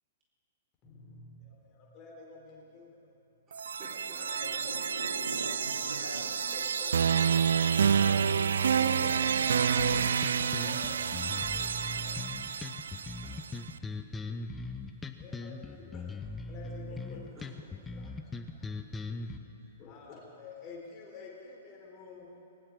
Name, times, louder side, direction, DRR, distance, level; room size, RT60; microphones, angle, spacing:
voice 1, 0.8-3.2 4.2-5.1 5.9-8.3 8.6-12.3 15.2-18.4 19.2-22.3, left 4 dB, 30° left, -2 dB, 4.0 m, -50 dB
voice 2, 3.5-5.0 5.3-5.4 13.2-13.6, right 1 dB, 20° right, -6 dB, 4.1 m, -52 dB
sound 1, 3.5-13.4, right 7 dB, 65° right, 0.4 m, -29 dB
voice 3, 4.4-6.7 8.0-8.8 12.6-13.2, right 1 dB, 80° right, -1 dB, 1.5 m, -44 dB
sound 2, 9.8-19.4, left 3 dB, 10° left, 0.7 m, -40 dB
19.0 x 18.5 x 3.7 m, 2.7 s
figure-of-eight pair, 110°, 0 cm